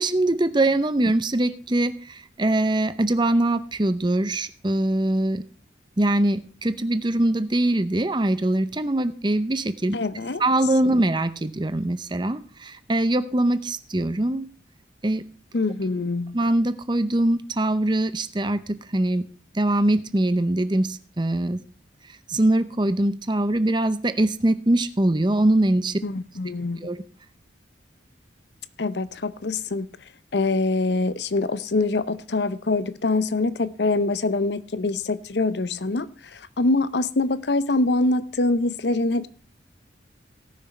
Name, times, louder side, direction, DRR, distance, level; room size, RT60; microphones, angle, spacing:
voice 1, 0.0-5.4 6.0-10.0 10.4-14.5 15.0-15.2 16.3-19.2 19.5-21.6 22.3-26.0 26.8-27.0, right 1 dB, 25° right, 0.7 m, -22 dB
voice 2, 9.9-10.4 15.5-16.4 26.0-26.9 28.8-29.9 30.3-39.3, left 2 dB, 65° left, 0.7 m, -24 dB
17.5 x 6.2 x 4.3 m
head